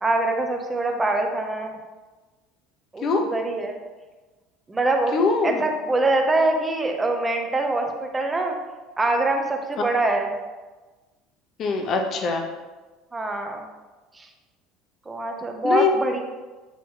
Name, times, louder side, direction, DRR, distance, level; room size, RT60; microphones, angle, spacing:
voice 1, 0.0-1.7 2.9-3.7 4.7-5.1 5.4-8.5 9.0-10.3 13.1-13.6 14.1-14.3 15.1-16.2, right 2 dB, 10° right, 3 dB, 0.7 m, -24 dB
voice 2, 3.0-3.3 5.1-5.6 11.6-12.5 15.6-15.9, left 4 dB, 35° left, 4 dB, 0.8 m, -22 dB
8.1 x 3.0 x 4.7 m, 1.2 s
cardioid pair, 160°, 0 cm